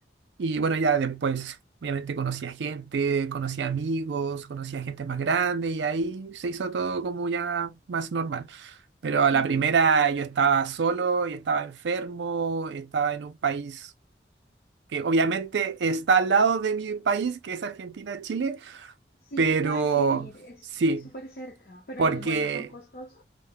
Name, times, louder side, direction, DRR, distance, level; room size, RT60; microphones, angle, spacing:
voice 1, 0.4-8.8 9.0-13.9 14.9-18.9 19.4-20.3 20.8-21.1 22.0-22.7, right 5 dB, 85° right, 0.4 m, -26 dB
voice 2, 9.3-9.7 19.2-23.2, equal, 60° left, 0.6 m, -41 dB
2.2 x 2.0 x 3.3 m
head